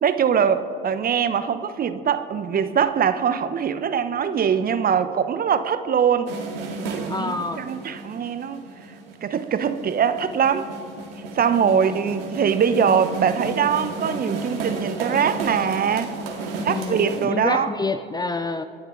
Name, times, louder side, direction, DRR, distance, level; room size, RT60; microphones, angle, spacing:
voice 1, 0.0-6.4 6.9-8.7 9.2-10.7 11.3-16.2 16.6-17.7, right 7 dB, 30° right, 12 dB, 1.0 m, -22 dB
sound 1, 6.3-17.3, right 3 dB, 75° right, 2.4 m, -33 dB
voice 2, 7.1-7.6 11.6-12.0 16.6-18.6, left 3 dB, 15° left, 10 dB, 0.6 m, -28 dB
26.5 x 11.0 x 3.9 m, 2.6 s
hypercardioid pair, 75°, 30 cm